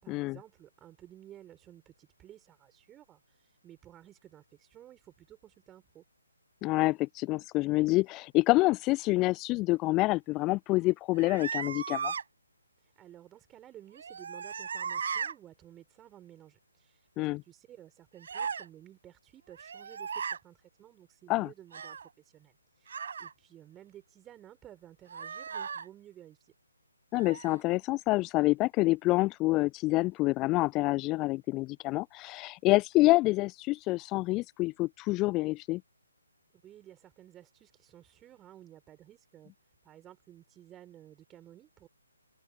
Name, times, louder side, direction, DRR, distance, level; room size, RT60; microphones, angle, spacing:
voice 1, 0.0-3.2 3.6-6.0 13.0-22.0 22.3-26.5 36.5-39.5 39.8-41.9, right 12 dB, 15° right, 5.1 m, -54 dB
voice 2, 6.6-12.1 17.2-17.4 21.3-21.5 27.1-35.8, left 20 dB, 20° left, 0.3 m, -27 dB
sound 1, 11.2-12.2 13.9-15.3 18.2-18.7 19.5-20.4 21.7-22.1 22.9-23.3 25.1-25.9 27.1-27.6, right 6 dB, 50° right, 5.0 m, -37 dB
figure-of-eight pair, 140°, 0 cm